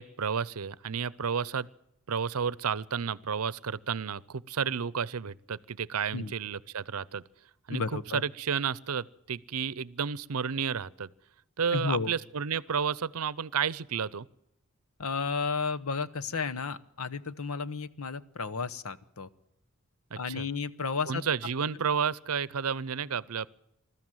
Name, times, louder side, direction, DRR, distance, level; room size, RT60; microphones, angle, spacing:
voice 1, 0.0-1.7 2.1-7.2 7.7-7.8 8.1-11.1 11.6-14.3 20.1-20.5 21.1-23.5, right 6 dB, 85° right, 22 dB, 0.7 m, -31 dB
voice 2, 7.7-8.2 11.7-12.1 15.0-19.3 20.2-21.2, left 4 dB, 80° left, 13 dB, 1.0 m, -32 dB
21.0 x 13.5 x 9.0 m, 0.81 s
head